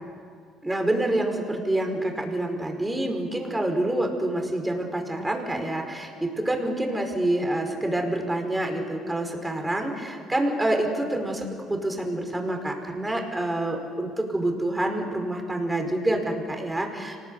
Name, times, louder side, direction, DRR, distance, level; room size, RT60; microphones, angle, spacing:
voice 1, 0.6-17.2, right 1 dB, 15° right, 3 dB, 5.2 m, -27 dB
25.5 x 19.5 x 8.4 m, 2.3 s
supercardioid pair, 70°, 0 cm